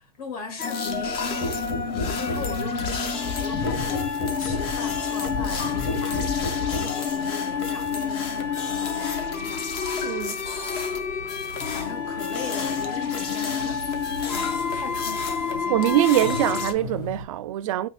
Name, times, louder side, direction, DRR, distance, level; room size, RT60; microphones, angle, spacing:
voice 1, 0.0-1.4 1.8-9.8 11.7-13.9 14.3-16.1, left 5 dB, 70° left, 1.9 m, -39 dB
sound 1, 0.6-16.7, left 6 dB, 25° left, 0.6 m, -28 dB
sound 2, 0.9-17.3, left 1 dB, 85° left, 2.1 m, -41 dB
sound 3, 1.4-7.0 7.8-8.0, left 3 dB, 45° left, 2.3 m, -32 dB
voice 2, 10.0-10.4 15.7-17.9, right 13 dB, 60° right, 0.4 m, -23 dB
5.4 x 2.9 x 2.4 m
supercardioid pair, 165°, 20 cm